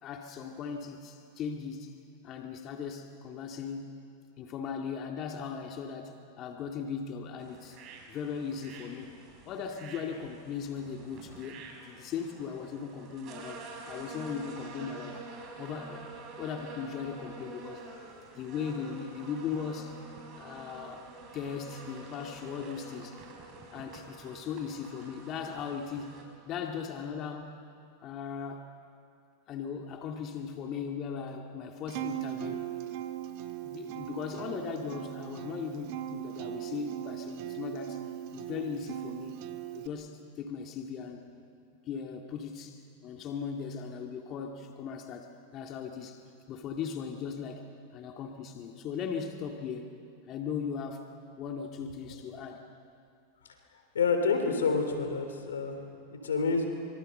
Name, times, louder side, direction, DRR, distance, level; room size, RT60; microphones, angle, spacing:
voice 1, 0.0-1.9 2.2-3.9 4.4-7.8 8.1-9.2 9.5-15.2 15.6-16.1 16.4-17.8 18.3-20.0 20.4-21.1 21.3-23.2 23.7-26.2 26.5-27.6 28.0-28.7 29.5-32.6 33.6-38.0 38.3-39.4 39.7-41.3 41.9-46.2 46.5-47.7 47.9-49.9 50.3-51.1 51.4-52.6, left 6 dB, 40° left, 3 dB, 2.2 m, -38 dB
sound 1, 7.4-26.2, right 3 dB, 40° right, 5.6 m, -47 dB
Acoustic guitar, 31.9-39.9, right 13 dB, 55° right, 1.7 m, -39 dB
voice 2, 53.9-55.8 56.1-56.7, left 4 dB, 90° left, 6 dB, 3.6 m, -28 dB
26.0 x 24.0 x 6.7 m, 2.4 s
hypercardioid pair, 110°, 0 cm